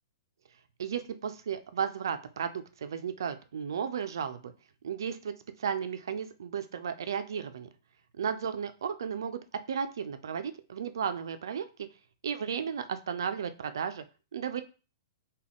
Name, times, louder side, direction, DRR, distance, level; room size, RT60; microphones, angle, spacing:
voice 1, 0.8-4.5 4.8-7.7 8.2-9.4 9.7-11.7 12.2-14.0 14.3-14.6, right 7 dB, 75° right, 10 dB, 0.4 m, -34 dB
3.7 x 2.3 x 3.5 m, 0.34 s
hypercardioid pair, 130°, 2 cm